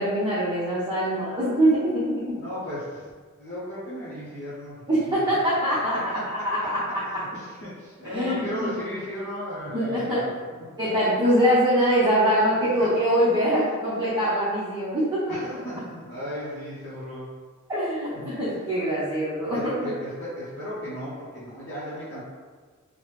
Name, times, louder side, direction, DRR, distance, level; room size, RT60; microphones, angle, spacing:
voice 1, 0.0-2.4 4.9-6.1 6.4-6.8 8.0-8.4 9.7-10.2 10.8-15.3 17.7-19.7, equal, 20° right, -12 dB, 0.7 m, -23 dB
voice 2, 2.4-3.1 3.4-5.1 6.1-6.5 7.0-10.4 12.8-12.9 15.3-17.3 18.1-18.4 19.5-22.2, equal, 50° left, -9 dB, 0.7 m, -36 dB
3.2 x 2.0 x 3.1 m, 1.5 s
head